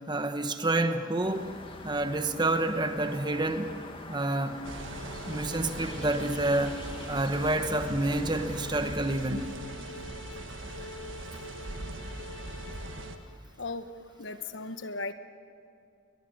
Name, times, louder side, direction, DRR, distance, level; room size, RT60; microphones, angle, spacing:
voice 1, 0.1-1.5 1.8-3.7 4.1-4.6 5.3-6.8 7.1-9.5, right 2 dB, 20° right, 8 dB, 1.2 m, -28 dB
sound 1, 1.2-9.0, left 2 dB, 25° left, 1.9 m, -45 dB
sound 2, 4.5-13.4, left 2 dB, 85° left, 1.6 m, -47 dB
sound 3, 4.6-13.2, right 2 dB, 65° right, 1.5 m, -41 dB
voice 2, 13.6-13.9 14.2-15.1, left 3 dB, 60° left, 10 dB, 1.2 m, -36 dB
21.5 x 21.0 x 9.5 m, 2.4 s
head